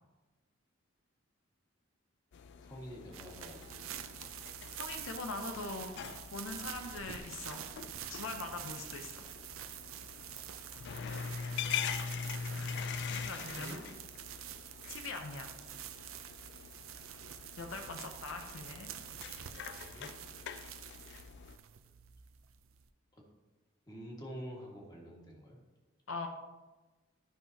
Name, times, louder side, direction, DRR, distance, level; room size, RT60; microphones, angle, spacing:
sound 1, 2.3-21.6, left 6 dB, 55° left, 0.3 m, -44 dB
voice 1, 2.5-4.3 12.7-13.3 13.6-13.8 19.2-20.1 23.1-23.2 23.9-25.6, equal, 20° left, -2 dB, 1.7 m, -49 dB
sound 2, 3.1-22.9, right 11 dB, 80° right, 0.5 m, -47 dB
voice 2, 4.7-5.9 6.3-7.7 8.1-9.3 12.5-12.8 13.1-13.8 14.9-15.6 17.6-18.9 26.1-26.3, left 3 dB, 75° left, 4 dB, 0.7 m, -42 dB
13.0 x 5.7 x 2.8 m, 1.2 s
head